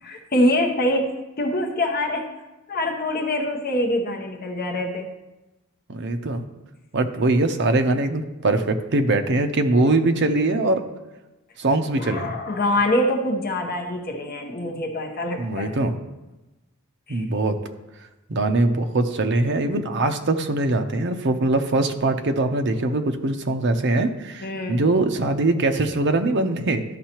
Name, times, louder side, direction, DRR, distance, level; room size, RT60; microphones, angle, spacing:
voice 1, 0.0-2.3 2.7-5.1 11.9-15.7 17.1-17.2 24.4-24.8, left 1 dB, 45° left, 3 dB, 0.9 m, -24 dB
voice 2, 5.9-6.4 6.9-10.8 11.6-12.3 15.4-15.9 17.1-17.6 18.3-26.8, right 2 dB, 55° right, 6 dB, 0.7 m, -22 dB
13.0 x 5.5 x 2.9 m, 1.1 s
head